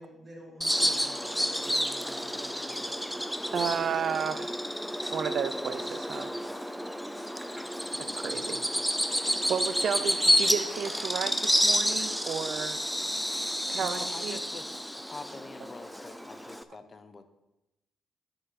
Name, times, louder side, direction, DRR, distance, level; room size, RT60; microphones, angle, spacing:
voice 1, 0.0-4.4, equal, 25° right, -5 dB, 4.1 m, -52 dB
Bird vocalization bird call bird song, 0.6-16.6, equal, ahead, 0.5 m, -30 dB
voice 2, 3.5-4.6 5.1-6.3 8.0-8.6 9.1-12.9 13.7-14.4, right 7 dB, 60° right, 13 dB, 0.6 m, -33 dB
voice 3, 13.8-14.8 15.1-17.3, left 3 dB, 30° left, 9 dB, 1.0 m, -45 dB
9.7 x 7.9 x 4.2 m, 0.96 s
cardioid pair, 90°, 0 cm